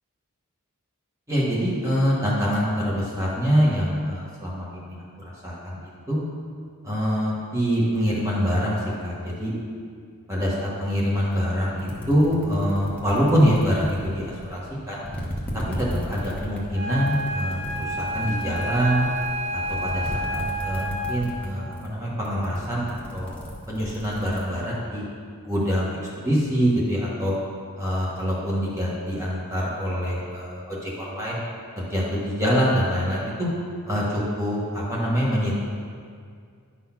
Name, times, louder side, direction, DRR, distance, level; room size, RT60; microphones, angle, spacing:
voice 1, 1.3-5.0 5.2-5.8 6.1-6.2 6.8-9.5 10.3-14.6 14.9-15.0 16.0-19.0 19.5-23.3 23.7-25.0 25.4-25.9 26.2-27.3 27.8-31.4 31.8-33.5 33.9-35.5, equal, 15° right, -6 dB, 1.4 m, -25 dB
sound 1, 11.3-11.4 11.8-14.7 15.0-21.5 21.7-22.0 22.2-24.4, equal, 5° left, 1.0 m, -35 dB
Wind instrument woodwind instrument, 16.7-21.3, equal, 30° right, 1.5 m, -30 dB
10.0 x 4.0 x 5.9 m, 2.2 s
head